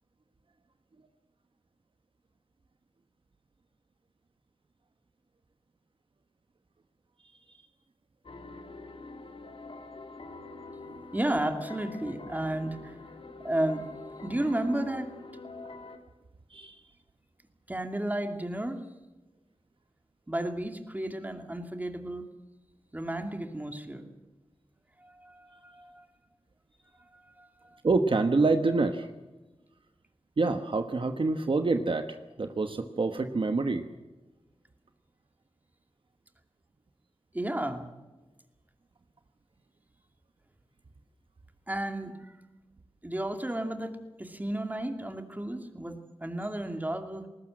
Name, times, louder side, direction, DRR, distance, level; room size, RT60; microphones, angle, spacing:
sound 1, 8.2-16.0, left 3 dB, 65° left, 2.7 m, -45 dB
voice 1, 11.1-13.0 13.4-13.9 14.2-15.1 17.7-18.8 20.3-22.2 22.9-24.0 25.0-26.1 27.1-27.8 37.3-37.9 41.7-42.4 43.0-47.3, right 1 dB, 15° right, 6 dB, 2.5 m, -33 dB
voice 2, 27.8-29.1 30.4-32.1 32.4-33.8, right 3 dB, 60° right, 8 dB, 1.3 m, -26 dB
20.5 x 19.0 x 7.7 m, 1.1 s
wide cardioid pair, 90°, 10 cm